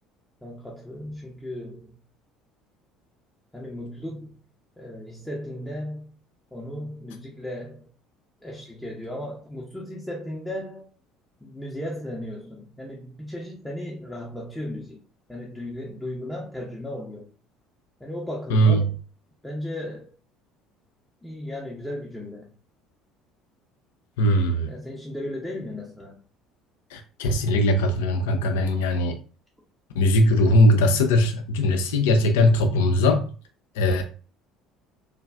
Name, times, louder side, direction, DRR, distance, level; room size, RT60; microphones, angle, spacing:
voice 1, 0.4-2.0 3.5-4.4 4.8-6.2 6.5-7.9 8.4-10.9 11.4-15.0 15.3-17.3 18.0-19.0 19.4-20.1 21.2-22.5 24.6-26.2, left 1 dB, 5° left, 0.7 m, -35 dB
voice 2, 18.5-18.8 24.2-24.7 26.9-29.2 30.0-33.3 33.8-34.0, left 1 dB, 65° left, 0.4 m, -20 dB
3.1 x 2.3 x 2.3 m
figure-of-eight pair, 60°, 0 cm